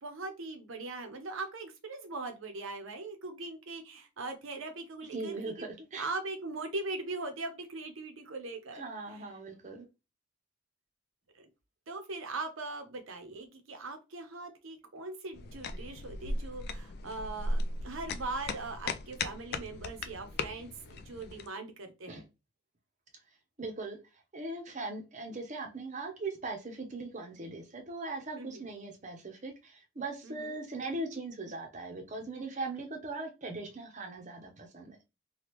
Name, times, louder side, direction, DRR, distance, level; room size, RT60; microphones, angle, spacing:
voice 1, 0.0-5.7 6.0-8.8 9.1-9.3 11.3-11.5 11.9-22.2 28.4-28.6 30.2-30.6, right 3 dB, 75° right, 0.8 m, -40 dB
voice 2, 5.1-6.1 8.7-9.9 22.1-22.2 23.6-24.0 24.3-35.0, right 3 dB, 35° right, 0.7 m, -40 dB
sound 1, 15.3-21.5, left 2 dB, 50° left, 0.3 m, -37 dB
3.4 x 2.3 x 3.0 m
head